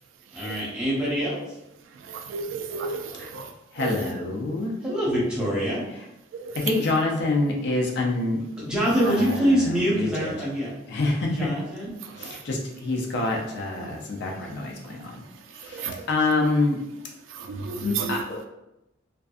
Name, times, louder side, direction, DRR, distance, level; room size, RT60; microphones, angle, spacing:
voice 1, 0.3-1.5 4.8-5.8 8.6-10.7 11.4-11.9, equal, 5° right, -7 dB, 0.9 m, -24 dB
voice 2, 1.9-4.0 6.3-6.6 12.0-12.4 15.5-16.1 17.3-18.2, right 5 dB, 85° right, 5 dB, 0.3 m, -34 dB
voice 3, 3.7-4.7 6.5-8.4 9.0-10.3 10.9-11.5 12.2-15.2 15.5-16.8 17.8-18.4, left 2 dB, 60° left, 0 dB, 0.5 m, -26 dB
2.5 x 2.3 x 2.4 m, 0.88 s
head